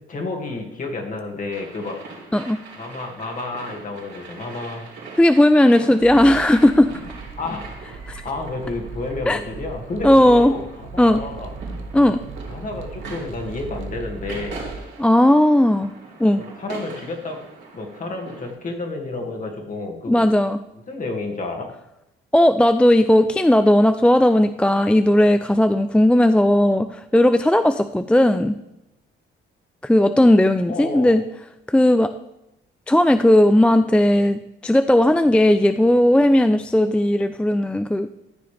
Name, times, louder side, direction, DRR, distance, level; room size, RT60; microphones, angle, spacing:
voice 1, 0.1-2.0 2.8-4.8 7.4-7.7 8.2-11.5 12.5-14.6 16.4-17.4 17.7-20.3 20.9-21.7 30.7-31.2, left 3 dB, 40° left, 2 dB, 2.1 m, -30 dB
sound 1, 1.5-18.5, right 3 dB, 65° right, 3.6 m, -41 dB
voice 2, 5.2-6.9 8.1-8.2 9.3-9.4 10.0-10.5 11.0-11.2 11.9-12.2 15.0-15.9 16.2-16.4 20.1-20.6 22.3-28.6 29.8-31.2 31.7-32.1 32.9-38.1, left 1 dB, 5° left, 10 dB, 0.3 m, -16 dB
sound 2, 6.0-14.8, right 4 dB, 80° right, 1.0 m, -37 dB
13.5 x 6.8 x 3.4 m, 0.88 s
cardioid pair, 90°, 20 cm